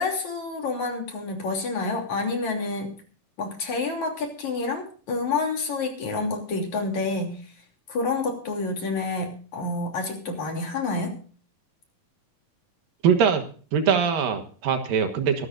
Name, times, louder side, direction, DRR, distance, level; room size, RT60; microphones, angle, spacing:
voice 1, 0.0-3.0 3.4-7.4 7.9-11.1, left 3 dB, 50° left, 2 dB, 4.2 m, -28 dB
voice 2, 13.0-13.4 13.7-15.5, right 7 dB, 70° right, 7 dB, 3.0 m, -22 dB
23.5 x 12.5 x 2.6 m, 0.40 s
omnidirectional pair, 4.3 m